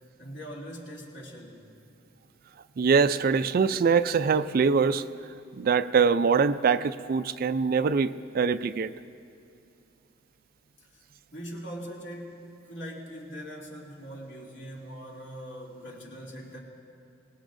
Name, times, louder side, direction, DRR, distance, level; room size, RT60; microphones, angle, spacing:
voice 1, 0.2-1.7 10.8-11.0 11.3-16.6, equal, 65° left, -4 dB, 2.8 m, -41 dB
voice 2, 2.8-5.1 5.6-8.9, right 5 dB, 50° right, 13 dB, 0.3 m, -23 dB
24.5 x 19.0 x 2.6 m, 2.5 s
head